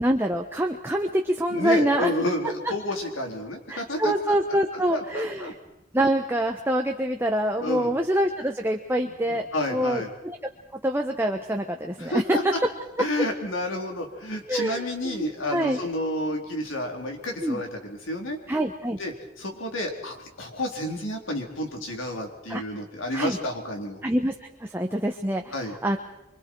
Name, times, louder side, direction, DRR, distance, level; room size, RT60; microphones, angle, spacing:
voice 1, 0.0-2.1 3.7-5.5 5.9-10.4 10.8-12.4 14.5-15.8 17.4-17.6 18.5-19.0 22.5-22.6 23.1-23.4 24.0-24.3 24.6-25.5 25.8-26.0, right 1 dB, 10° right, 3 dB, 1.1 m, -25 dB
voice 2, 1.5-4.4 4.9-5.5 7.6-7.9 9.0-10.1 12.0-12.6 13.0-18.4 19.0-24.0 25.5-25.8, left 1 dB, 90° left, 2 dB, 4.0 m, -30 dB
25.5 x 25.0 x 4.7 m, 0.90 s
head